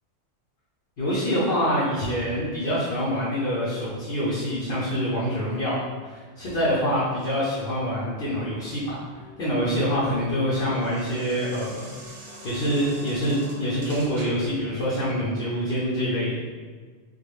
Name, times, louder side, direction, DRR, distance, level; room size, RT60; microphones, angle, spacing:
voice 1, 1.0-11.9 12.4-16.4, equal, 60° left, -8 dB, 1.0 m, -26 dB
sound 1, 9.1-14.6, right 1 dB, 50° right, 0.5 m, -45 dB
3.6 x 2.1 x 3.3 m, 1.5 s
omnidirectional pair, 1.1 m